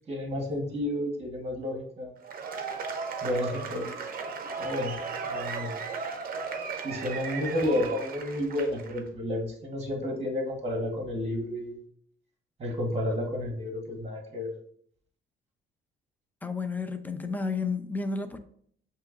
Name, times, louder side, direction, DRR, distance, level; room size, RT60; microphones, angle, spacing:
voice 1, 0.1-2.1 3.2-3.9 4.6-5.7 6.8-11.8 12.6-14.5, left 1 dB, 30° right, 1.2 m, -31 dB
Cheering / Applause / Crowd, 2.2-9.0, right 5 dB, 45° right, 0.6 m, -36 dB
voice 2, 16.4-18.4, left 4 dB, 10° left, 0.5 m, -31 dB
7.2 x 2.8 x 2.4 m
cardioid pair, 90°, 20 cm